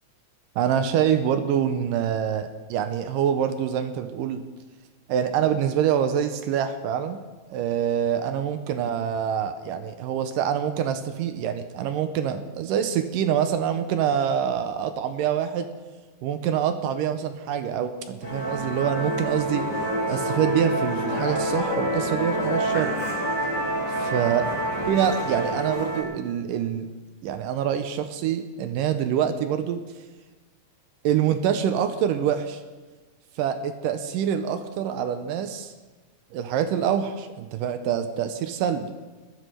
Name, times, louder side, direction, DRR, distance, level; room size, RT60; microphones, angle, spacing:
voice 1, 0.6-4.4 5.1-7.2 7.5-15.7 16.2-19.7 20.1-23.0 24.0-24.5 24.9-26.9 27.2-29.8 31.0-32.6 33.4-35.7 36.3-38.9, right 9 dB, 85° right, 9 dB, 2.4 m, -25 dB
Musical instrument, 18.2-26.0, right 1 dB, 30° left, 5.3 m, -27 dB
20.5 x 15.5 x 3.4 m, 1.3 s
omnidirectional pair, 3.9 m